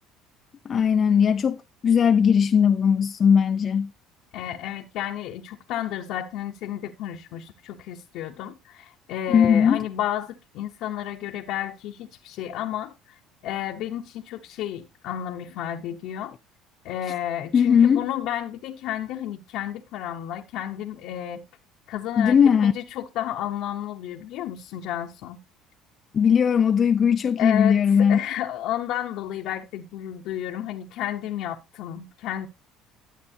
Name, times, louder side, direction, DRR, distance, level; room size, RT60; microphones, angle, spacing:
voice 1, 0.7-3.9 9.3-9.8 17.5-18.0 22.2-22.7 26.1-28.2, left 7 dB, 35° left, 0.4 m, -19 dB
voice 2, 4.3-16.3 16.8-21.4 21.9-25.4 27.4-32.5, left 11 dB, 70° left, 0.9 m, -32 dB
12.0 x 7.5 x 2.7 m
cardioid pair, 110°, 0 cm